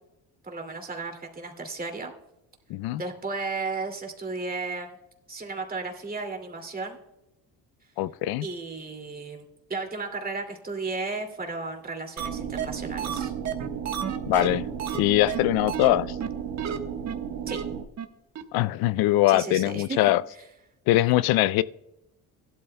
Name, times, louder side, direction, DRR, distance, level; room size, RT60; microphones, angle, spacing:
voice 1, 0.4-2.1 3.0-5.0 5.3-7.0 8.4-9.4 9.7-13.3 17.5-17.6 19.3-20.0, right 3 dB, 25° right, 3 dB, 2.4 m, -34 dB
voice 2, 2.7-3.0 8.0-8.4 14.3-14.7 14.9-16.2 18.5-20.2 20.9-21.6, left 15 dB, 75° left, 18 dB, 0.5 m, -22 dB
sound 1, 12.2-12.3 12.6-12.7 13.0-15.0 15.3-15.4 15.7-15.9 16.2-16.3 16.6-16.8 17.1-17.2 17.5-17.6 18.0-18.1 18.3-18.4, right 8 dB, 45° right, 1.3 m, -31 dB
sound 2, 12.2-17.8, right 8 dB, 70° right, 1.3 m, -34 dB
16.5 x 12.5 x 2.2 m, 0.89 s
cardioid pair, 105°, 37 cm